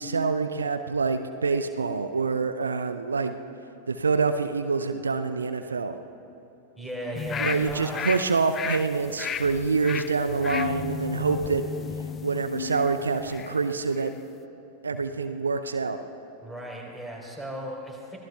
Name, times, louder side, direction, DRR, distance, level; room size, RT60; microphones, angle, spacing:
voice 1, 0.0-3.4 3.9-5.9 7.4-11.6 12.2-14.1 14.8-16.0, right 4 dB, 75° right, 9 dB, 0.6 m, -26 dB
voice 2, 6.8-8.0 16.4-18.2, equal, 5° left, -2 dB, 4.1 m, -36 dB
sound 1, 7.1-13.6 14.0-14.1, left 7 dB, 25° left, 0.4 m, -35 dB
sound 2, 10.2-13.6, left 7 dB, 45° left, 0.9 m, -37 dB
25.0 x 18.5 x 2.4 m, 2.9 s
figure-of-eight pair, 90°, 0 cm